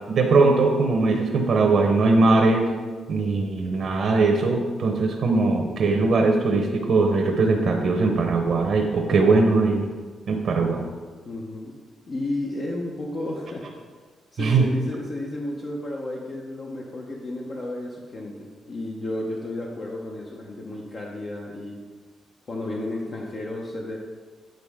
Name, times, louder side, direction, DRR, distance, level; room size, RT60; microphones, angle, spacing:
voice 1, 0.1-2.7 3.1-9.8 10.3-10.8 14.4-14.7, right 3 dB, 60° right, 2 dB, 0.8 m, -20 dB
voice 2, 11.2-11.8 12.0-13.8 14.3-21.9 22.5-24.0, left 1 dB, 50° left, -2 dB, 0.8 m, -32 dB
9.1 x 3.9 x 3.6 m, 1.5 s
cardioid pair, 85°, 0 cm